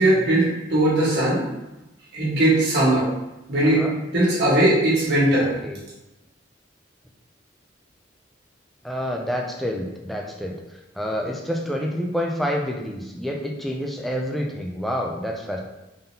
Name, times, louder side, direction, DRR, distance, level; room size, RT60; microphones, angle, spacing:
voice 1, 0.0-1.4 2.1-3.1 3.5-3.9 4.1-5.5, right 1 dB, 60° right, -7 dB, 1.4 m, -19 dB
voice 2, 8.8-15.6, equal, ahead, 0 dB, 0.3 m, -28 dB
3.8 x 3.5 x 2.7 m, 0.96 s
head